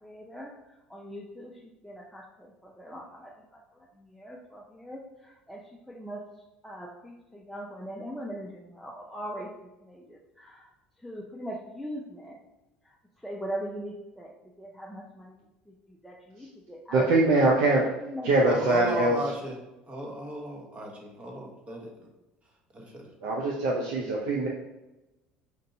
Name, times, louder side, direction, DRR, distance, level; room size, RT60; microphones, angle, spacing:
voice 1, 0.0-0.5 0.9-1.6 1.8-2.2 2.6-3.3 4.0-5.0 5.5-5.6 5.9-6.2 6.6-10.7 11.0-12.4 13.2-14.3 14.6-15.4 16.0-17.1 18.0-18.3 18.7-18.9, equal, ahead, -3 dB, 0.6 m, -40 dB
voice 2, 16.9-17.8 18.2-19.2 23.2-24.5, right 2 dB, 70° right, -2 dB, 0.6 m, -23 dB
voice 3, 18.5-19.6 19.9-22.1 22.7-23.1, equal, 30° right, 0 dB, 1.1 m, -35 dB
5.3 x 2.7 x 2.7 m, 1.0 s
hypercardioid pair, 80°, 4 cm